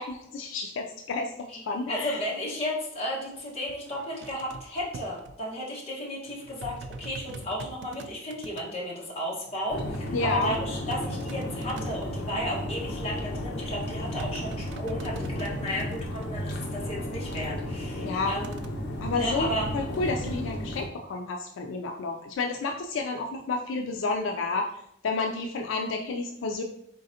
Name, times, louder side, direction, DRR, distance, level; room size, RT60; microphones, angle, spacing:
voice 1, 0.0-2.2 10.1-10.5 18.0-18.4 19.0-24.7 25.0-26.6, left 3 dB, 75° left, 3 dB, 0.4 m, -30 dB
voice 2, 1.9-18.5 19.1-19.7 20.2-20.4, equal, 30° left, -5 dB, 1.2 m, -34 dB
sound 1, 3.3-3.4 3.7-5.4 6.3-8.6 9.5-12.4 13.8-16.3 18.4-18.7, right 3 dB, 60° right, 0.3 m, -43 dB
sound 2, 9.7-20.9, equal, 55° left, 0.8 m, -34 dB
4.0 x 3.8 x 2.7 m, 0.75 s
head